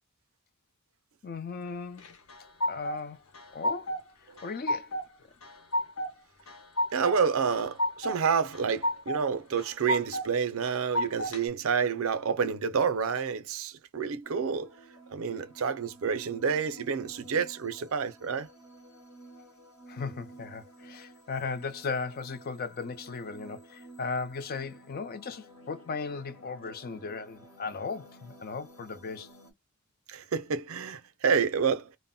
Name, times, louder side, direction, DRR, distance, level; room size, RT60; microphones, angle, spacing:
voice 1, 1.2-2.1 2.7-3.2 3.5-3.9 4.2-5.0 19.9-29.3, left 4 dB, 45° left, 0.4 m, -37 dB
sound 1, 2.0-3.0 3.3-4.1 4.4-5.1 5.4-6.1 6.5-7.2 7.5-8.2 8.5-9.2 9.6-10.3 10.6-11.4, left 1 dB, 70° left, 0.8 m, -31 dB
voice 2, 6.9-14.7 15.1-18.5 30.1-31.9, right 6 dB, 65° right, 0.5 m, -29 dB
sound 2, 14.2-29.5, right 1 dB, 85° left, 1.2 m, -52 dB
2.1 x 2.0 x 3.7 m
head